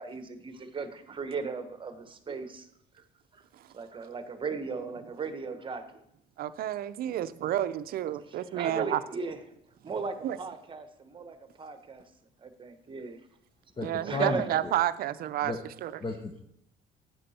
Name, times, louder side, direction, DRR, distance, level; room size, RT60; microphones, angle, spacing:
voice 1, 0.0-2.7 2.9-3.0 3.3-3.4 3.7-6.0 8.3-9.4 9.8-12.0 12.4-13.2 14.0-14.6 16.1-16.2, right 4 dB, 30° right, 9 dB, 1.1 m, -37 dB
voice 2, 6.4-9.0 10.2-10.4 13.8-16.0, right 12 dB, 65° right, 13 dB, 0.5 m, -30 dB
voice 3, 13.8-14.4 15.4-15.6 16.0-16.4, left 3 dB, 30° left, 4 dB, 1.0 m, -33 dB
10.5 x 7.7 x 4.3 m, 0.75 s
cardioid pair, 110°, 17 cm